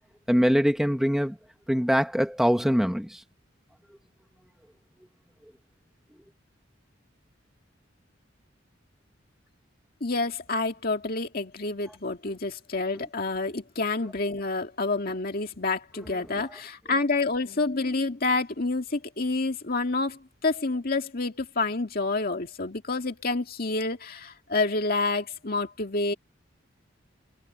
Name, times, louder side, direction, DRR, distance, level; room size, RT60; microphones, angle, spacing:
voice 1, 0.3-1.3 1.7-3.2, equal, ahead, 1.3 m, -23 dB
voice 2, 10.0-26.1, left 3 dB, 50° left, 2.0 m, -28 dB
head